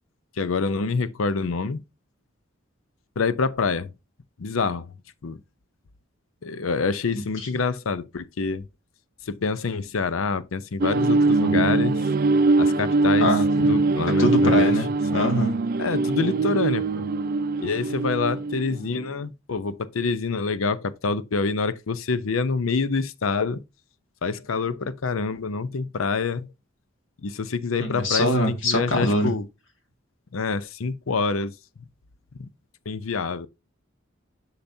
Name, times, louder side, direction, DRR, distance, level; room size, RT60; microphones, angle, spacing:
voice 1, 0.4-1.8 3.2-3.9 4.4-4.9 5.2-5.4 6.4-8.7 9.2-12.0 12.6-14.7 15.8-17.1 17.6-23.6 24.2-26.5 27.2-29.4 30.3-31.5 32.4-32.5 32.9-33.5, left 4 dB, 90° left, 0.6 m, -26 dB
sound 1, 10.8-19.0, right 3 dB, 45° right, 0.4 m, -22 dB
voice 2, 13.2-13.7 14.2-14.9 15.1-15.6 27.8-29.3, left 1 dB, 70° left, 2.0 m, -23 dB
10.5 x 5.7 x 2.7 m
head